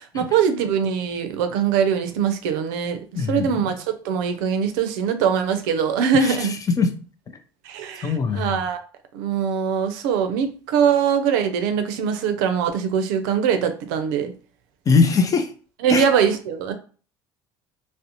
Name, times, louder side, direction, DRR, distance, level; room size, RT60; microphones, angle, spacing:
voice 1, 0.0-6.5 7.6-8.8 9.1-14.3 15.8-16.7, right 7 dB, 80° right, 0.4 m, -22 dB
voice 2, 3.1-3.7 6.2-6.5 6.8-6.9 8.0-8.6 14.9-15.5 15.9-16.1, left 5 dB, 35° left, 0.5 m, -21 dB
2.5 x 2.0 x 2.8 m
hypercardioid pair, 75°, 10 cm